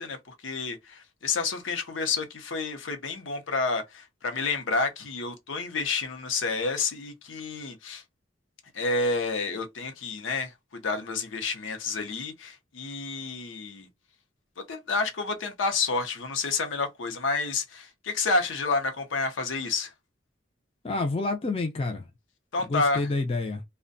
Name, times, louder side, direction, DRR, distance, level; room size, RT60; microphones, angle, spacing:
voice 1, 0.0-8.0 8.7-13.9 14.6-19.9 22.5-23.1, left 3 dB, 80° left, 0.6 m, -29 dB
voice 2, 20.8-22.1 22.7-23.6, left 3 dB, 30° left, 0.4 m, -28 dB
2.5 x 2.1 x 2.5 m
head